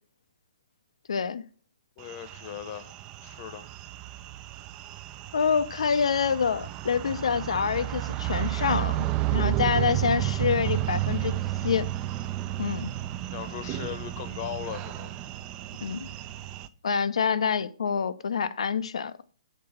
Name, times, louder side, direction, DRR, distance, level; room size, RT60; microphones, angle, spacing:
voice 1, 1.1-1.4 5.3-11.9 12.6-12.9 15.8-16.1 16.8-19.1, left 6 dB, 80° left, 0.6 m, -27 dB
voice 2, 2.0-2.9 3.2-3.7 13.3-15.1, left 10 dB, 40° left, 0.8 m, -38 dB
sound 1, 2.1-16.7, right 15 dB, 25° right, 0.4 m, -32 dB
6.7 x 3.8 x 5.8 m
hypercardioid pair, 140°, 3 cm